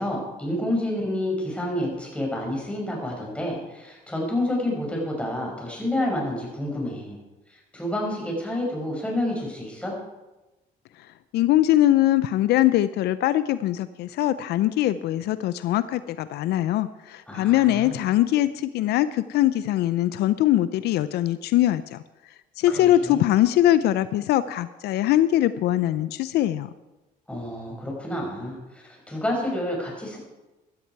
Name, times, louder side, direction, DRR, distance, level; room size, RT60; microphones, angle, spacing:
voice 1, 0.0-7.2 7.7-9.9 17.3-18.0 22.7-23.2 27.3-30.2, left 1 dB, 5° left, -2 dB, 5.8 m, -29 dB
voice 2, 11.3-22.0 22.6-26.7, left 13 dB, 75° left, 14 dB, 0.5 m, -22 dB
16.5 x 12.5 x 4.7 m, 1.1 s
cardioid pair, 110°, 17 cm